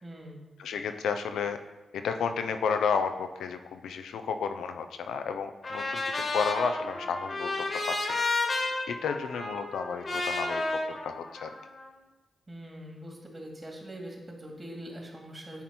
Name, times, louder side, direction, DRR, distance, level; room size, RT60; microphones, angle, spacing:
voice 1, 0.0-0.4 12.5-15.6, equal, 35° right, 0 dB, 2.1 m, -43 dB
voice 2, 0.6-1.6 1.9-8.5 8.9-11.5, left 6 dB, 90° left, 8 dB, 0.5 m, -32 dB
Trumpet, 5.6-11.9, left 2 dB, 55° left, 1.6 m, -32 dB
9.6 x 4.3 x 4.2 m, 1.1 s
cardioid pair, 55°, 0 cm